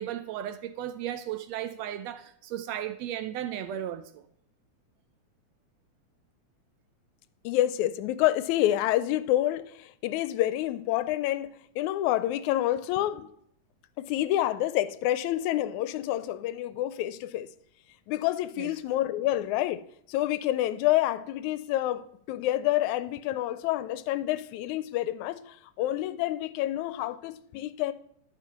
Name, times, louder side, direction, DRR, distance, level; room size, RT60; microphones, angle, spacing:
voice 1, 0.0-4.3 18.6-18.7, right 11 dB, 75° right, 1.6 m, -35 dB
voice 2, 7.4-13.3 14.0-17.5 18.1-19.8 20.1-27.9, left 14 dB, 90° left, 2.0 m, -28 dB
10.5 x 5.6 x 5.7 m
omnidirectional pair, 3.3 m